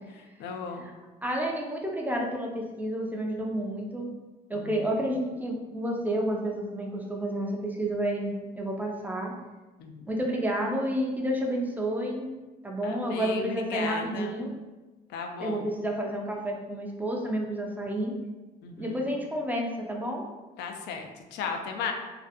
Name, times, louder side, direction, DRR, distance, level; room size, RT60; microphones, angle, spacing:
voice 1, 0.4-0.9 4.5-4.7 9.8-10.1 12.8-14.3 15.1-15.6 18.6-18.9 20.6-21.9, left 5 dB, 85° left, 3 dB, 0.4 m, -35 dB
voice 2, 1.2-4.1 4.5-9.3 10.1-12.3 12.6-14.5 15.4-18.2 18.8-20.3, right 1 dB, 10° right, 0 dB, 0.4 m, -30 dB
2.5 x 2.3 x 2.5 m, 1.2 s
cardioid pair, 110°, 17 cm